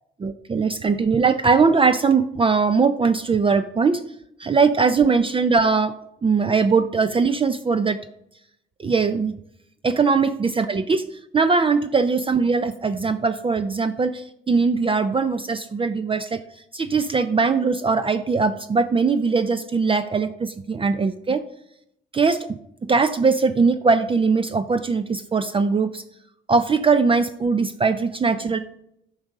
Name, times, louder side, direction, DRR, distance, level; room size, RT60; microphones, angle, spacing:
voice 1, 0.2-4.0 4.4-5.9 6.2-8.0 8.8-9.3 9.8-11.0 11.3-16.4 16.7-21.4 22.1-22.6 22.9-26.0 26.5-28.6, right 4 dB, 25° right, 11 dB, 0.5 m, -20 dB
9.2 x 4.8 x 6.5 m, 0.78 s
cardioid pair, 90°, 20 cm